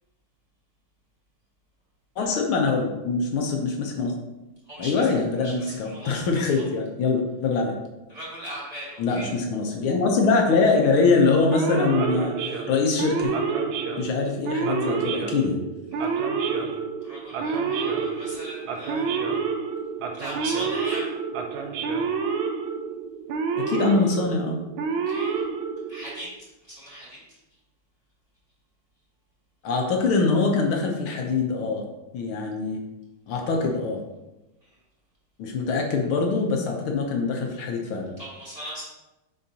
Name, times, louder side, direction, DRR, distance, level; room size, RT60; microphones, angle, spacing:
voice 1, 2.2-4.1 4.8-7.8 9.0-13.3 14.0-15.6 23.6-24.6 29.6-31.8 32.1-32.8 33.3-34.0 35.4-38.1, left 4 dB, 80° left, 2 dB, 1.8 m, -23 dB
voice 2, 4.7-5.1 5.4-6.6 8.1-9.3 15.9-16.2 17.0-19.3 20.2-21.1 25.1-25.4 25.9-27.2 34.6-34.7 38.2-38.8, equal, 20° right, -8 dB, 2.4 m, -39 dB
Male speech man speaking / Siren, 11.5-26.2, right 5 dB, 80° right, 1.5 m, -28 dB
9.6 x 3.9 x 2.8 m, 1.0 s
omnidirectional pair, 2.3 m